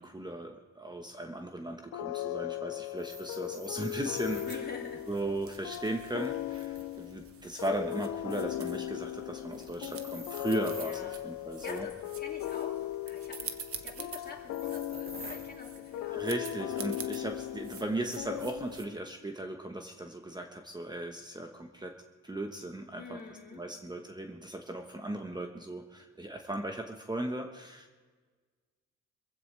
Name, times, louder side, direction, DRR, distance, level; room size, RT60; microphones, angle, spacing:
voice 1, 0.0-4.6 5.1-11.9 16.1-22.0 22.2-23.2 23.5-28.0, right 1 dB, 15° right, 4 dB, 1.2 m, -37 dB
sound 1, 1.9-19.1, left 14 dB, 70° left, 0.5 m, -38 dB
sound 2, 2.9-4.6 5.7-7.0 9.6-11.0 13.4-14.1 14.5-15.6, right 2 dB, 30° right, 2.7 m, -48 dB
sound 3, 4.0-18.9, right 6 dB, 50° right, 1.3 m, -49 dB
voice 2, 4.5-5.1 10.8-11.2 11.6-13.5 13.8-16.3 23.0-23.6, left 4 dB, 30° left, 0 dB, 2.7 m, -45 dB
23.5 x 15.0 x 3.4 m, 1.4 s
cardioid pair, 90°, 30 cm